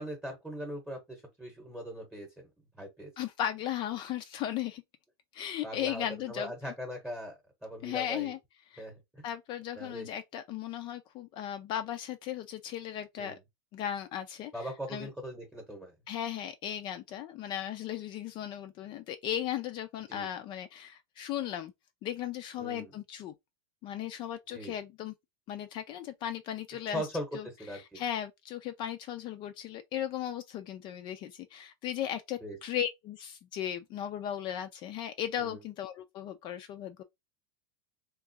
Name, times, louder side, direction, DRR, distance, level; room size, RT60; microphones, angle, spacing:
voice 1, 0.0-2.3 2.8-3.1 5.6-8.3 8.8-9.2 9.7-10.1 13.2-13.4 14.5-15.9 20.1-20.3 22.6-22.9 24.5-24.7 26.9-28.0 32.4-32.6 35.4-35.6, equal, 5° right, 0.9 m, -40 dB
voice 2, 3.2-4.8 5.3-6.5 7.8-8.4 8.7-8.9 9.2-13.4 13.7-15.1 16.1-21.7 22.0-23.3 23.8-25.1 25.5-27.0 27.3-37.0, left 10 dB, 35° left, 0.4 m, -36 dB
3.6 x 3.0 x 2.8 m
supercardioid pair, 150°, 14 cm